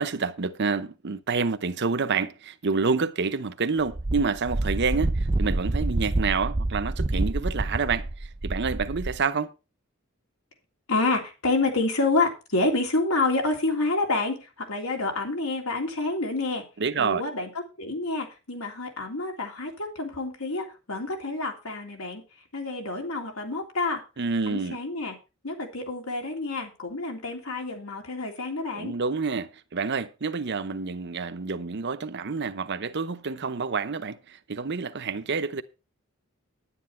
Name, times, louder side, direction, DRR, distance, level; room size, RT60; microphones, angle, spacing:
voice 1, 0.0-9.5 16.8-17.3 24.2-24.8 28.7-35.6, right 4 dB, 55° right, 0.8 m, -28 dB
Wind, 3.9-9.2, right 2 dB, 25° right, 0.5 m, -27 dB
voice 2, 10.9-16.6 17.0-17.5 17.8-22.2 22.5-24.0 24.5-25.1 25.4-28.9, left 2 dB, 85° left, 3.2 m, -28 dB
10.5 x 9.9 x 4.4 m
head